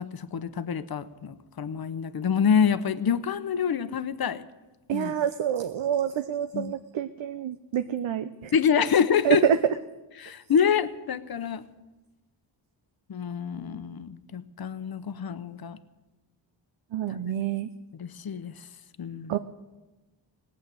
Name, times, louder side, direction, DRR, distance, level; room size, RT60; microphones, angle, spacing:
voice 1, 0.0-4.4 4.9-5.1 6.5-6.7 8.5-9.4 10.2-11.6 13.1-15.8 18.0-18.5 19.0-19.3, left 7 dB, 50° left, 13 dB, 0.9 m, -26 dB
voice 2, 4.9-8.5 9.2-9.6 16.9-17.7 19.3-19.4, right 9 dB, 75° right, 10 dB, 0.7 m, -27 dB
18.0 x 8.4 x 7.7 m, 1.1 s
wide cardioid pair, 85°, 47 cm